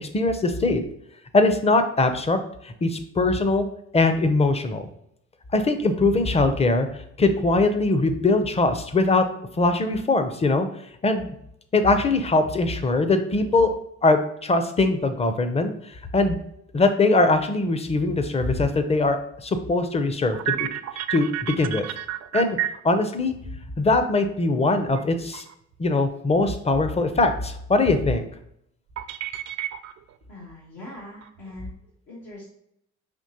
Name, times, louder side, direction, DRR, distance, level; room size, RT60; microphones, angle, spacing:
voice 1, 0.0-0.8 1.3-2.4 2.6-3.7 3.9-4.9 5.5-6.9 7.2-9.2 9.6-10.7 11.0-11.3 11.7-13.7 14.0-15.7 16.1-16.4 16.7-20.7 21.1-21.3 21.6-21.9 22.3-22.6 22.8-23.3 23.8-25.4 25.8-28.3, left 2 dB, 20° left, 8 dB, 0.5 m, -21 dB
sound 1, 20.2-23.0 25.0-25.1 25.3-25.7 29.0-30.1 30.5-30.6 31.2-31.7, right 11 dB, 60° right, 0.4 m, -30 dB
voice 2, 30.3-31.8 32.1-32.4, left 1 dB, 75° left, -5 dB, 1.3 m, -41 dB
5.1 x 2.9 x 2.8 m, 0.75 s
cardioid pair, 90°, 30 cm